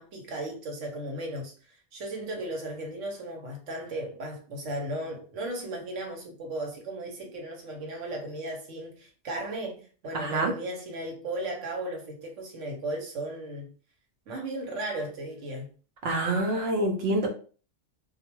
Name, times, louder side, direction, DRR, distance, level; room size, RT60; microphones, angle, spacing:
voice 1, 0.0-13.7 14.3-15.7, right 1 dB, 90° right, 1.1 m, -36 dB
voice 2, 10.1-10.5 16.0-17.3, right 2 dB, 60° right, 0.8 m, -26 dB
2.3 x 2.2 x 2.9 m
omnidirectional pair, 1.2 m